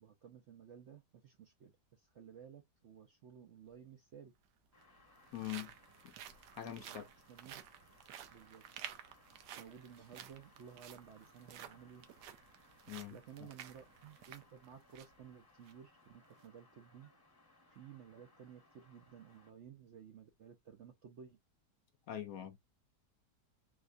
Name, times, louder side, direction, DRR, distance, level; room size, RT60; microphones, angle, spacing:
voice 1, 0.0-4.3 6.6-7.0 7.3-7.5 8.3-8.6 9.6-12.1 13.1-17.1 17.7-21.4, right 8 dB, 65° right, 0.7 m, -55 dB
sound 1, 3.6-3.7 4.7-15.2 15.6-15.7 16.2-16.5, right 10 dB, 80° right, 1.2 m, -53 dB
sound 2, 4.7-19.5, left 2 dB, 20° left, 0.8 m, -67 dB
voice 2, 5.3-5.7 6.0-6.1 6.6-7.1 12.9-13.5 22.1-22.6, left 12 dB, 70° left, 0.9 m, -44 dB
4.2 x 2.3 x 2.5 m
omnidirectional pair, 1.8 m